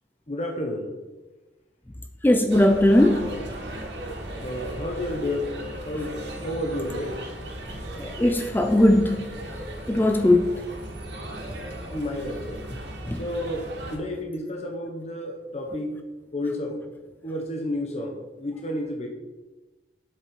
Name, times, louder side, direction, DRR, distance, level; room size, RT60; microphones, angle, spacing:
voice 1, 0.3-0.9 4.4-7.1 11.9-12.6 13.2-16.0 16.3-16.8 17.2-19.1, left 1 dB, 35° left, 1 dB, 1.2 m, -31 dB
voice 2, 2.2-3.3 8.0-9.2 9.9-10.6 13.1-13.2, left 1 dB, 10° left, 6 dB, 0.5 m, -19 dB
sound 1, 2.5-14.0, right 1 dB, 75° right, 2.1 m, -36 dB
7.7 x 7.7 x 4.9 m, 1.2 s
head